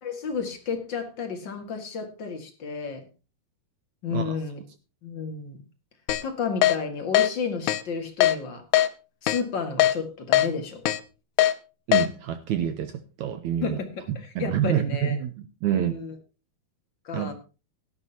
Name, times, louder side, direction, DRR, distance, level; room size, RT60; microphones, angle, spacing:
voice 1, 0.0-3.1 4.0-4.6 5.0-5.6 6.2-8.6 9.2-10.8 13.6-15.2 15.7-16.1 17.0-17.3, left 5 dB, 40° left, 5 dB, 1.9 m, -32 dB
Keyboard (musical), 6.1-6.2 6.6-6.8 7.2-7.3 7.7-7.8 8.2-8.4 8.7-8.9 9.3-9.4 9.8-9.9 10.3-10.5 10.9-11.0 11.4-11.5 11.9-12.1, left 12 dB, 90° left, 2.7 m, -20 dB
voice 2, 11.9-13.8 14.3-16.0 17.1-17.3, right 10 dB, 85° right, 10 dB, 1.7 m, -27 dB
17.0 x 11.0 x 2.9 m, 0.32 s
omnidirectional pair, 4.3 m